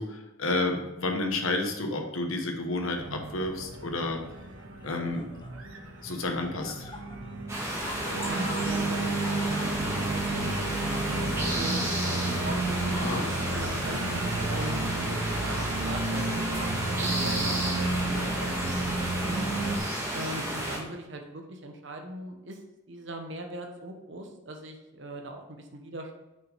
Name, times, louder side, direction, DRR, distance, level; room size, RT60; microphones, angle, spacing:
voice 1, 0.0-4.2 4.8-5.2 6.0-6.9 13.0-13.2 13.5-13.6, left 2 dB, 85° left, 3 dB, 1.2 m, -30 dB
sound 1, 2.8-3.4 4.3-5.6 5.9-8.7 9.0-12.4 12.8-13.4 13.8-14.1 14.7-15.8 16.1-16.3 17.0-17.5 17.9-18.0 19.1-19.8 20.7-20.8, left 2 dB, 20° left, 0.6 m, -47 dB
Organ, 2.9-19.8, right 2 dB, 90° right, 1.0 m, -32 dB
sound 2, 7.5-20.8, right 1 dB, 15° right, 1.6 m, -32 dB
voice 2, 8.3-14.2 14.5-14.9 15.3-19.4 20.1-26.1, right 1 dB, 60° right, 3 dB, 1.0 m, -40 dB
6.2 x 5.7 x 5.5 m, 0.99 s
head